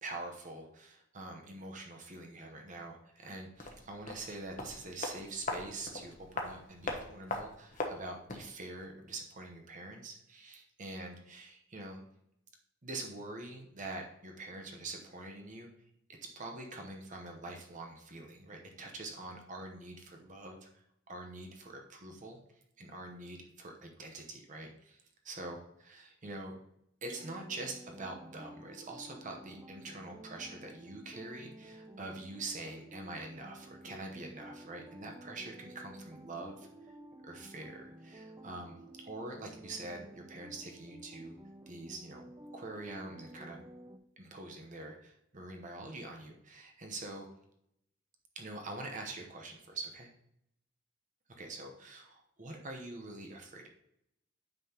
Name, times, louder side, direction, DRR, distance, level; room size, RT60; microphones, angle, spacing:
voice 1, 0.0-12.0 12.8-15.7 16.1-25.0 25.2-25.6 25.9-26.5 27.0-36.9 37.2-41.4 41.7-42.3 42.5-43.6 44.2-47.3 48.3-50.1 51.3-53.7, right 2 dB, 40° right, 2 dB, 0.9 m, -45 dB
sound 1, 3.6-8.6 8.8-8.9, left 2 dB, 40° left, 1.1 m, -40 dB
sound 2, 27.2-44.0, right 1 dB, 15° right, 0.4 m, -52 dB
9.1 x 5.7 x 2.9 m, 0.76 s
head